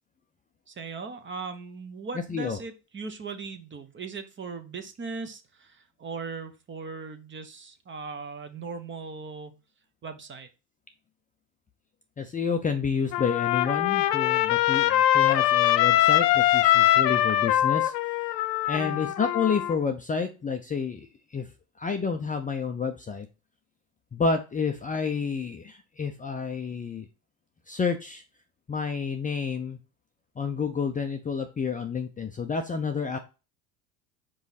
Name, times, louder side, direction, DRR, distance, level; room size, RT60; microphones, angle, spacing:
voice 1, 0.7-9.5 10.0-10.5 18.8-19.1, right 4 dB, 25° right, 8 dB, 1.0 m, -38 dB
voice 2, 12.2-17.9 18.7-21.1 21.3-21.5 21.8-23.3 24.1-27.1 27.7-28.2 28.7-29.8 30.4-33.2, left 5 dB, 15° left, 5 dB, 0.6 m, -29 dB
Trumpet, 13.1-19.8, left 13 dB, 75° left, 0.8 m, -22 dB
5.1 x 4.8 x 4.1 m, 0.30 s
hypercardioid pair, 95°, 49 cm